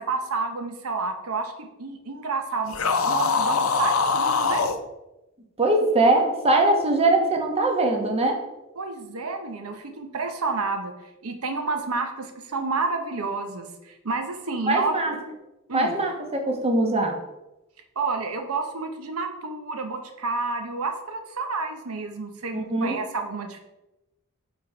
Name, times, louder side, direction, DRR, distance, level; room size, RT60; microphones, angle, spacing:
voice 1, 0.0-2.8 3.0-4.6 8.8-10.9 11.2-14.9 15.7-16.0 18.0-23.6, right 4 dB, 85° right, 6 dB, 0.8 m, -30 dB
sound 1, 2.7-4.8, left 5 dB, 70° left, 0.6 m, -23 dB
voice 2, 5.6-8.4 14.7-15.1 15.7-17.2 22.5-23.0, right 2 dB, 30° right, 3 dB, 1.0 m, -21 dB
8.6 x 3.7 x 4.5 m, 0.99 s
head